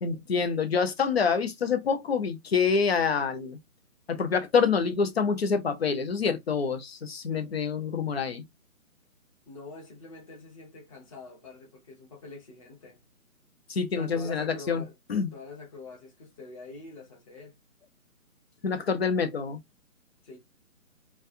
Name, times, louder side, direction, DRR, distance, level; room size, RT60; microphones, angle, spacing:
voice 1, 0.0-3.6 4.1-8.4 13.7-14.8 15.1-15.3 18.6-19.6, left 5 dB, 45° left, 0.7 m, -26 dB
voice 2, 9.5-13.0 13.9-14.9 15.3-17.6 20.2-20.4, left 3 dB, 25° left, 1.0 m, -45 dB
3.2 x 2.3 x 2.6 m
figure-of-eight pair, 145°, 43 cm